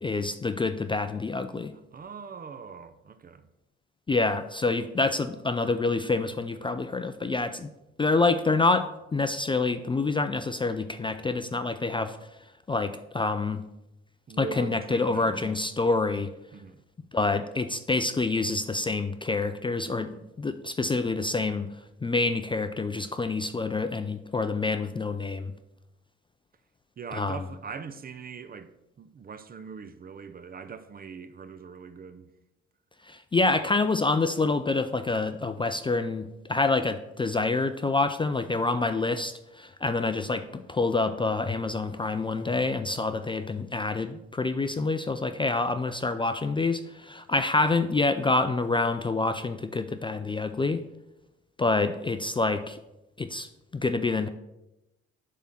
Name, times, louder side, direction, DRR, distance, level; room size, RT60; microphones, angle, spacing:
voice 1, 0.0-1.7 4.1-7.7 8.0-12.2 12.7-13.6 14.4-16.3 17.1-21.7 22.0-25.5 27.1-27.4 33.0-50.8 51.6-52.8 53.2-54.3, left 3 dB, 15° left, 0.4 m, -27 dB
voice 2, 1.9-3.5 14.3-15.6 16.5-16.8 27.0-28.7 29.0-32.3, right 6 dB, 30° right, 0.6 m, -41 dB
7.3 x 3.7 x 5.7 m
supercardioid pair, 70°, 29 cm